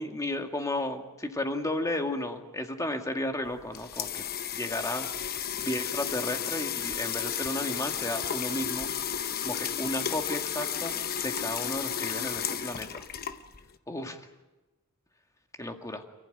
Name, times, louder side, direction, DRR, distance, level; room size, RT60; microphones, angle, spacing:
voice 1, 0.0-4.2 4.5-8.9 9.4-13.0 13.9-14.2 15.6-16.0, left 1 dB, 15° left, 4 dB, 2.0 m, -33 dB
sound 1, 3.5-13.7, left 8 dB, 45° left, 0.9 m, -33 dB
28.5 x 15.5 x 9.2 m, 1.1 s
head